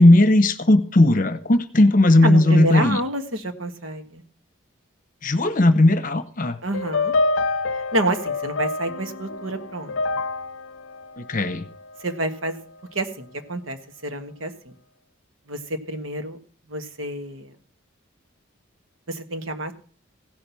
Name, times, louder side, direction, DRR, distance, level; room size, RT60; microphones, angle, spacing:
voice 1, 0.0-3.0 5.2-6.6 11.2-11.6, left 1 dB, 40° left, 11 dB, 0.9 m, -16 dB
voice 2, 2.2-4.2 6.6-7.1 7.9-9.9 12.0-12.6 12.9-14.7 15.5-16.4 16.7-17.5 19.1-19.7, right 1 dB, 75° right, 7 dB, 1.5 m, -28 dB
sound 1, 6.7-12.1, left 3 dB, 70° left, 0.6 m, -27 dB
16.5 x 6.0 x 6.9 m, 0.41 s
head